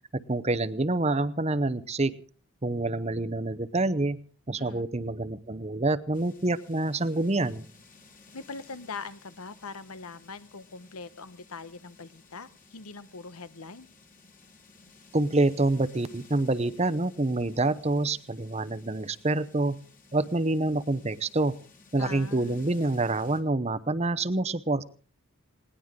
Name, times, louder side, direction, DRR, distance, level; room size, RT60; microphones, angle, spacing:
voice 1, 0.3-2.2 2.6-4.2 4.5-7.7 15.1-19.8 20.1-21.5 21.9-24.9, right 2 dB, 30° right, 14 dB, 0.7 m, -27 dB
voice 2, 4.6-5.0 8.3-13.9 22.0-22.7, left 4 dB, 85° left, 14 dB, 1.0 m, -42 dB
sound 1, 6.1-23.4, left 4 dB, 35° left, 2.5 m, -56 dB
20.0 x 18.0 x 3.7 m, 0.39 s
head